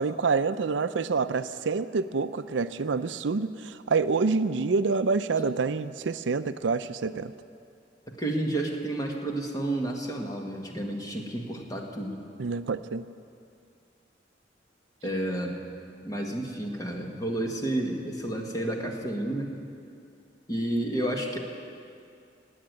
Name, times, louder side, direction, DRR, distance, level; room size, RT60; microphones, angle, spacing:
voice 1, 0.0-7.3 12.4-13.1, right 4 dB, 90° right, 12 dB, 0.5 m, -27 dB
voice 2, 8.1-12.2 15.0-15.6 16.0-19.6 20.5-21.4, right 1 dB, 20° left, 1 dB, 1.7 m, -31 dB
17.5 x 8.8 x 9.4 m, 2.5 s
head